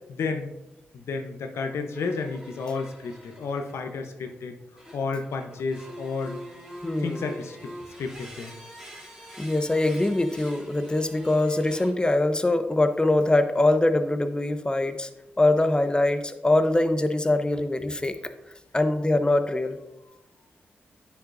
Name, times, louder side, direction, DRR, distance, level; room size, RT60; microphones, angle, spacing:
voice 1, 0.1-0.5 0.9-4.5 4.9-6.4 7.0-7.7 8.0-8.5, left 4 dB, 80° left, 5 dB, 0.8 m, -31 dB
sound 1, 1.9-3.9 4.8-12.2 13.0-13.3, equal, 10° right, 2.7 m, -45 dB
voice 2, 6.8-7.3 9.4-15.1 15.4-18.2 18.7-19.8, left 2 dB, 20° left, 9 dB, 0.7 m, -23 dB
9.9 x 5.8 x 2.6 m, 0.97 s
cardioid pair, 55°, 4 cm